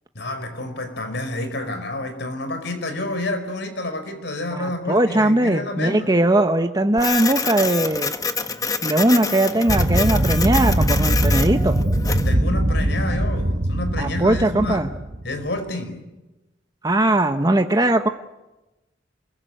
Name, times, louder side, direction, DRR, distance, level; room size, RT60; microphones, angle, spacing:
voice 1, 0.2-6.1 12.1-14.9 15.2-16.1, left 2 dB, 65° left, 5.1 m, -29 dB
voice 2, 4.5-8.1 8.8-11.7 14.0-14.9 16.8-18.1, right 1 dB, 20° right, 1.1 m, -19 dB
Printer, 7.0-12.3, left 4 dB, 20° left, 1.4 m, -27 dB
sound 1, 9.7-15.5, right 1 dB, 40° right, 1.3 m, -21 dB
28.5 x 22.0 x 9.3 m
head